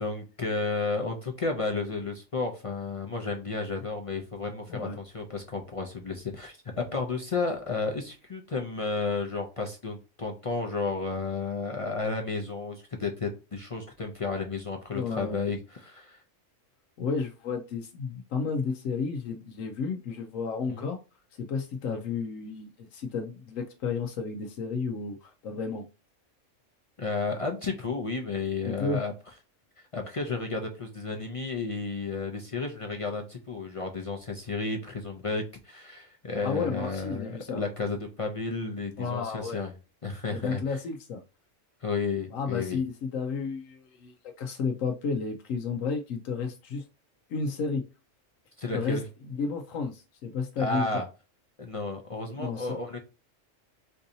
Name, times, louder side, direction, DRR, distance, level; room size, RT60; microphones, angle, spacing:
voice 1, 0.0-16.2 20.7-20.9 21.8-22.0 27.0-29.1 29.8-39.7 40.0-40.8 41.8-42.8 48.6-49.0 50.6-51.0 51.6-53.0, left 3 dB, 45° left, 0.4 m, -32 dB
voice 2, 14.9-15.4 17.0-21.0 21.4-25.9 28.6-29.0 36.4-37.6 39.0-39.6 40.3-41.2 42.3-46.8 47.3-47.8 48.7-49.0 49.4-51.0 52.4-52.8, left 5 dB, 90° left, 1.0 m, -32 dB
4.5 x 2.7 x 2.6 m
omnidirectional pair, 1.3 m